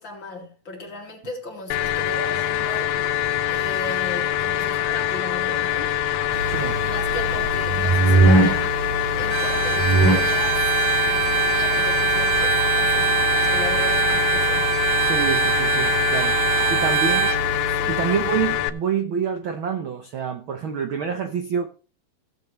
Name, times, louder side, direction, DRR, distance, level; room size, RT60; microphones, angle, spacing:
voice 1, 0.0-2.9 3.5-6.0 6.5-8.8 9.1-14.8 16.6-17.0 17.8-18.0, left 2 dB, 40° left, 3.2 m, -36 dB
sound 1, 1.7-18.7, left 11 dB, 85° left, 2.2 m, -24 dB
sound 2, 6.3-18.5, right 2 dB, 20° right, 1.8 m, -25 dB
Bowed string instrument, 9.3-17.4, right 15 dB, 85° right, 2.2 m, -24 dB
voice 2, 15.0-17.3 17.7-21.7, right 7 dB, 65° right, 1.3 m, -27 dB
16.5 x 8.1 x 3.2 m
omnidirectional pair, 3.4 m